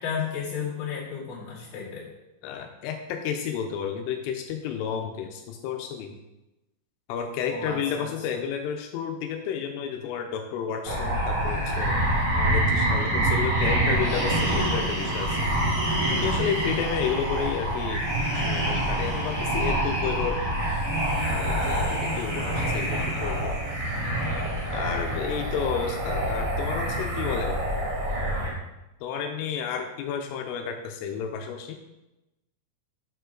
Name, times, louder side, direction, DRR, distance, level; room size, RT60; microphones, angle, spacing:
voice 1, 0.0-2.1 7.5-8.4 24.7-25.5, left 6 dB, 50° left, -8 dB, 3.1 m, -34 dB
voice 2, 2.4-6.2 7.1-12.0 12.4-15.4 16.1-18.1 18.4-20.4 21.3-23.5 24.7-27.6 29.0-31.8, left 7 dB, 85° left, 4 dB, 3.2 m, -31 dB
sound 1, 10.8-28.5, right 1 dB, 90° right, 0.7 m, -26 dB
8.5 x 5.3 x 3.8 m, 0.97 s
omnidirectional pair, 5.7 m